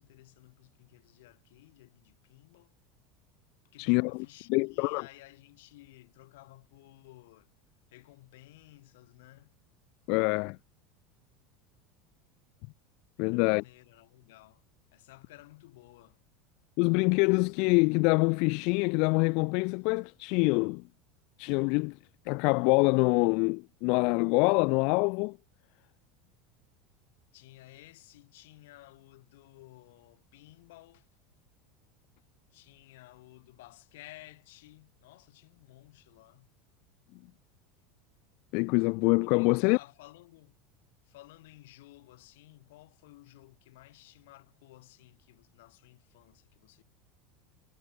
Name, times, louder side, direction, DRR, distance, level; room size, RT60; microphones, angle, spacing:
voice 1, 0.0-2.7 3.6-7.5 7.9-9.5 13.2-14.6 14.9-16.2 27.3-31.1 32.5-36.5 39.2-40.6 41.0-46.8, left 18 dB, 80° left, 7.0 m, -55 dB
voice 2, 3.8-4.1 4.5-5.0 10.1-10.6 13.2-13.6 16.8-20.8 21.4-22.0 22.3-25.4 38.5-39.8, left 32 dB, 55° left, 0.6 m, -25 dB
supercardioid pair, 150°, 0 cm